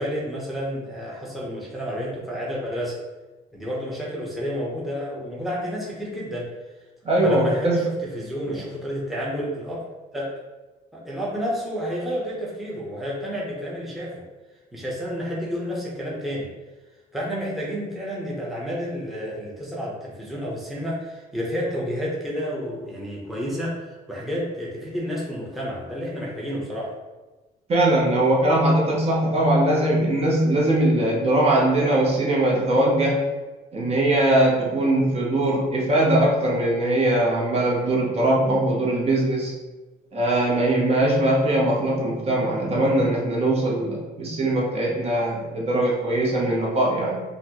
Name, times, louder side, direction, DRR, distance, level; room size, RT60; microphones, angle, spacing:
voice 1, 0.0-3.0 3.5-6.5 7.2-9.8 10.1-10.3 10.9-14.2 14.7-16.5 17.1-26.9, equal, ahead, -5 dB, 0.7 m, -30 dB
voice 2, 7.0-7.8 27.7-33.2 33.7-39.5 40.1-47.2, right 1 dB, 35° right, -3 dB, 0.7 m, -21 dB
4.1 x 2.1 x 2.9 m, 1.2 s
cardioid pair, 110°, 17 cm